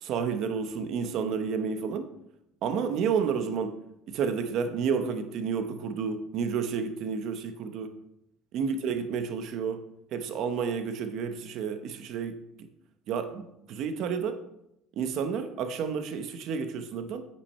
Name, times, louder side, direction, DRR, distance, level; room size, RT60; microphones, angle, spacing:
voice 1, 0.0-2.1 2.6-3.8 4.1-8.0 8.5-12.7 13.1-14.4 15.0-17.3, right 6 dB, 50° right, 8 dB, 0.9 m, -31 dB
8.7 x 8.6 x 4.3 m, 0.81 s
cardioid pair, 165°, 0 cm